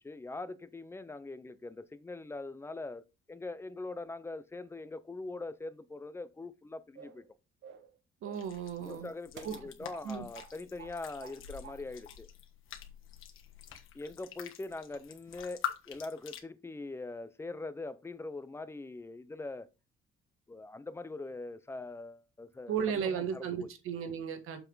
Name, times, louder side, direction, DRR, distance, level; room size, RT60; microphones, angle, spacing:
voice 1, 0.0-7.2 8.8-12.3 13.9-19.7 20.5-22.7 23.0-23.7, left 2 dB, 10° left, 0.5 m, -42 dB
sound 1, 7.0-7.3 7.6-7.9 8.2-8.6 8.9-10.1 10.3-10.5 10.8-11.4 11.6-11.8, right 8 dB, 60° right, 1.0 m, -50 dB
voice 2, 8.2-9.1 9.4-9.5 10.0-10.3 22.7-24.6, right 7 dB, 85° right, 1.8 m, -35 dB
sound 2, 8.3-16.4, left 10 dB, 75° left, 1.4 m, -45 dB
6.9 x 6.0 x 3.9 m
cardioid pair, 155°, 21 cm